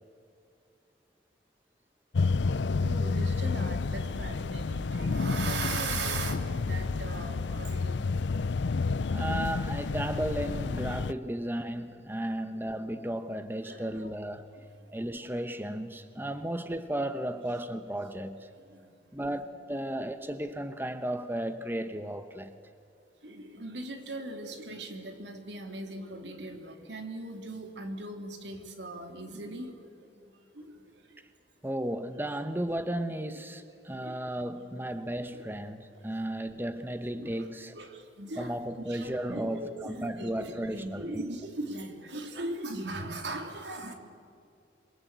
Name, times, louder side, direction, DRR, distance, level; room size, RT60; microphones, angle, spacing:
sound 1, 2.1-11.1, left 4 dB, 90° left, 0.6 m, -30 dB
voice 1, 2.8-8.1 12.3-12.4 13.6-14.0 14.8-14.9 18.7-18.9 19.2-19.5 23.2-31.2 33.7-34.2 34.9-35.0 35.3-35.4 35.9-36.3 37.2-37.5 37.7-43.9, right 2 dB, 85° right, 3.1 m, -39 dB
voice 2, 9.1-14.5 14.9-18.5 19.1-22.5 31.6-37.8 38.4-41.2, right 1 dB, 10° right, 1.0 m, -34 dB
27.0 x 23.0 x 8.1 m
head